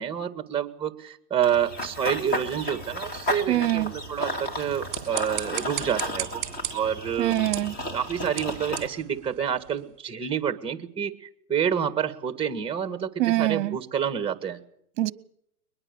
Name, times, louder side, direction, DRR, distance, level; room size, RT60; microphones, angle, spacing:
voice 1, 0.0-6.4 6.7-7.3 7.9-14.6, right 8 dB, 10° right, 1.6 m, -28 dB
Run / Bird vocalization bird call bird song, 1.4-8.9, equal, 20° left, 2.6 m, -33 dB
voice 2, 3.5-3.9 7.2-7.7 13.2-13.8 15.0-15.1, right 15 dB, 50° right, 1.0 m, -24 dB
sound 1, 4.6-9.9, right 14 dB, 25° right, 3.3 m, -37 dB
22.5 x 20.5 x 6.9 m
hypercardioid pair, 135°, 47 cm